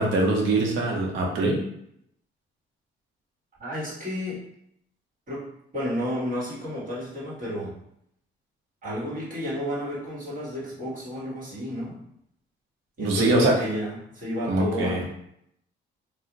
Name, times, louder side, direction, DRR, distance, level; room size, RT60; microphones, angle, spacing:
voice 1, 0.0-1.6 13.0-13.5 14.5-15.0, right 2 dB, 80° right, 0 dB, 0.8 m, -23 dB
voice 2, 3.6-4.4 5.3-7.7 8.8-12.0 13.0-15.1, equal, 40° right, -7 dB, 1.3 m, -31 dB
2.5 x 2.1 x 3.8 m, 0.74 s
cardioid pair, 90°, 20 cm